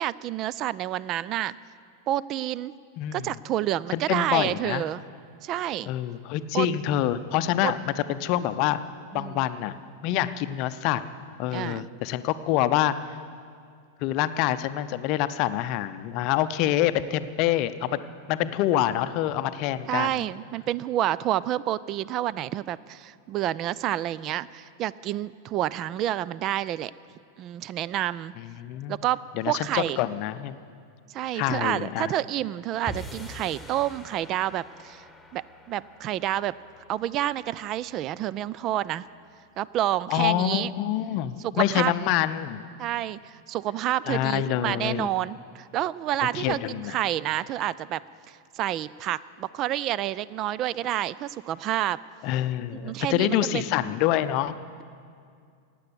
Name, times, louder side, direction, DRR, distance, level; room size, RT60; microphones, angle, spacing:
voice 1, 0.0-1.5 2.1-2.7 3.1-5.0 5.4-5.9 6.5-6.7 7.6-7.7 9.1-9.4 11.5-11.9 19.9-26.9 27.4-28.3 28.9-30.0 31.1-35.0 35.3-36.5 36.9-39.1 39.6-40.7 41.4-41.9 42.8-48.0 48.3-52.0 52.8-53.4, right 13 dB, 35° right, 19 dB, 0.3 m, -29 dB
voice 2, 3.0-3.3 3.9-4.8 5.9-7.8 8.1-8.8 9.1-9.7 10.0-11.0 11.4-13.1 14.0-18.0 18.3-20.2 28.4-29.0 29.4-30.5 31.3-32.1 40.1-42.6 44.1-45.1 46.3-47.0 52.2-54.6, left 12 dB, 45° left, 13 dB, 0.6 m, -26 dB
sound 1, 32.9-39.2, left 1 dB, 5° left, 1.5 m, -45 dB
16.0 x 9.2 x 8.3 m, 2.3 s
figure-of-eight pair, 90°, 0 cm